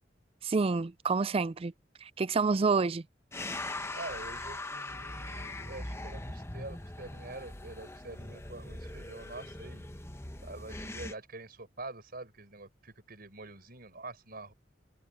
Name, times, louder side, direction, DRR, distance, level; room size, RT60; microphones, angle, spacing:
voice 1, 0.4-1.7 2.0-3.1, right 4 dB, 30° right, 0.4 m, -28 dB
sound 1, 3.3-11.1, left 2 dB, 15° left, 1.1 m, -41 dB
voice 2, 3.9-9.9 10.4-14.5, right 2 dB, 55° right, 5.5 m, -46 dB
head